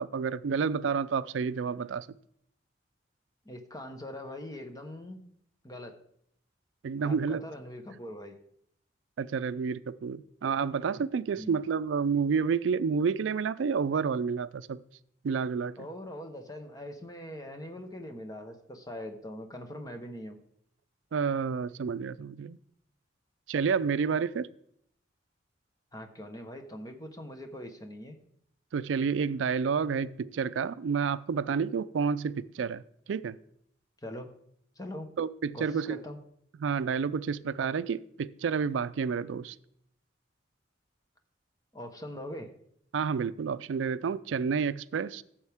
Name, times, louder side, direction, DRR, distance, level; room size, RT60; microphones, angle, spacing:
voice 1, 0.0-2.1 6.8-7.4 9.2-14.8 15.2-15.9 21.1-22.6 23.5-24.5 28.7-32.8 33.1-33.4 35.2-36.0 36.6-39.6 42.9-45.2, right 6 dB, 90° right, 0.4 m, -29 dB
voice 2, 3.4-5.2 5.6-6.0 7.0-8.4 11.3-11.7 15.8-20.4 25.9-28.2 34.0-34.3 34.8-35.1 35.5-36.2 41.7-42.5, left 1 dB, 20° left, 1.0 m, -42 dB
14.0 x 7.2 x 3.5 m
head